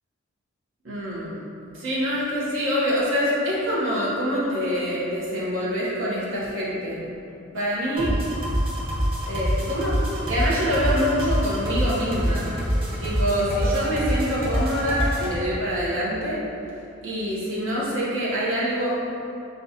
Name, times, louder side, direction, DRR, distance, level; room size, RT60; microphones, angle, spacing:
voice 1, 0.8-1.4 1.7-7.0 7.5-8.4 9.3-10.0 10.3-12.5 13.0-16.4 17.0-19.1, equal, 75° right, -8 dB, 0.9 m, -25 dB
sound 1, 8.0-15.3, equal, 25° right, 0.7 m, -26 dB
6.1 x 2.3 x 2.7 m, 2.8 s
head